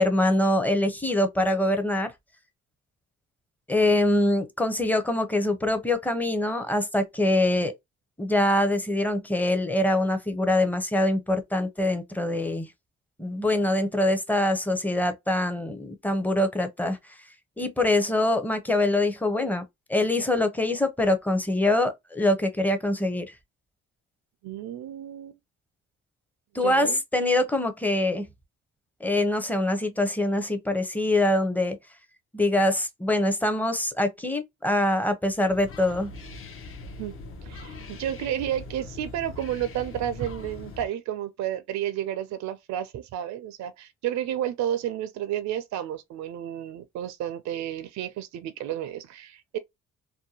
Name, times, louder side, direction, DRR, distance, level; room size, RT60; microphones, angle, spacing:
voice 1, 0.0-2.1 3.7-7.7 8.2-12.7 13.2-17.0 17.6-19.6 19.9-23.2 26.5-28.3 29.0-31.8 32.3-36.1, left 1 dB, 5° left, 0.6 m, -24 dB
voice 2, 24.4-25.4 26.6-27.0 37.0-37.1 37.4-49.6, right 11 dB, 65° right, 0.4 m, -31 dB
sound 1, 35.5-40.9, left 3 dB, 45° left, 0.6 m, -41 dB
2.6 x 2.2 x 2.7 m
cardioid pair, 90°, 30 cm